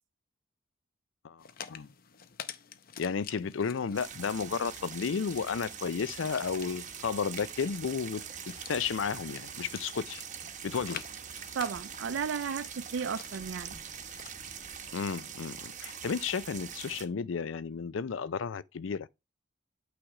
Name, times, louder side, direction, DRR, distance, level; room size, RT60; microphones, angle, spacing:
voice 1, 1.2-1.9 3.0-8.2 8.7-10.2 10.6-11.0 14.9-19.1, left 6 dB, 85° left, 0.5 m, -33 dB
sound 1, 1.4-14.7, left 8 dB, 50° left, 0.7 m, -49 dB
sound 2, 3.9-17.1, right 8 dB, 40° right, 0.8 m, -43 dB
sound 3, 6.4-14.9, equal, 30° left, 3.3 m, -59 dB
voice 2, 11.5-13.7, right 6 dB, 70° right, 0.4 m, -34 dB
8.8 x 3.3 x 4.8 m
head